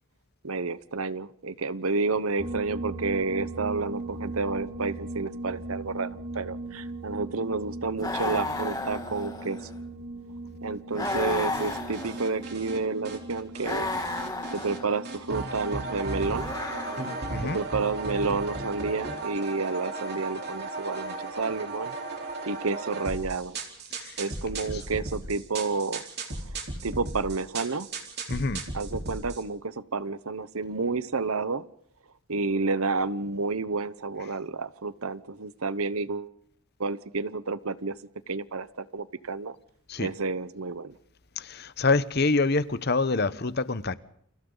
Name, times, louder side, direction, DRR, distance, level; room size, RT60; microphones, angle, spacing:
voice 1, 0.4-6.1 6.3-9.6 10.6-13.9 14.5-16.5 17.4-21.9 22.5-23.6 24.2-26.0 26.8-27.9 28.7-31.6 32.3-36.3 36.8-38.0 38.3-39.5 40.0-40.9, right 3 dB, 85° right, 1.0 m, -30 dB
sound 1, 2.4-17.2, right 2 dB, 25° right, 1.7 m, -39 dB
sound 2, 8.0-9.8 10.9-12.5 13.6-15.0 16.3-17.4, left 2 dB, 20° left, 2.5 m, -33 dB
sound 3, 11.0-12.8 13.0-14.8 15.0-29.4, right 3 dB, 50° right, 4.0 m, -35 dB
voice 2, 28.3-28.6 39.9-40.1 41.4-43.9, left 3 dB, 50° left, 1.0 m, -26 dB
29.5 x 28.5 x 4.0 m
head